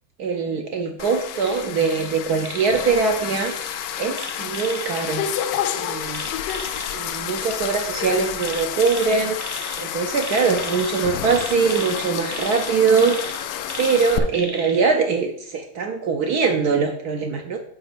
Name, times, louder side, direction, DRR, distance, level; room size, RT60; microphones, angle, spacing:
voice 1, 0.2-3.5 4.0-5.2 5.7-6.3 6.9-9.4 9.8-13.3 13.8-17.6, right 5 dB, 65° right, 4 dB, 1.0 m, -22 dB
sound 1, 1.0-14.2, left 10 dB, 75° left, 1.1 m, -29 dB
sound 2, 1.4-2.1 2.4-2.9 3.5-4.9 6.1-6.9 8.4-9.8 10.2-14.8 15.2-15.3, right 2 dB, 20° right, 0.6 m, -36 dB
5.5 x 5.1 x 5.8 m, 0.67 s
omnidirectional pair, 2.2 m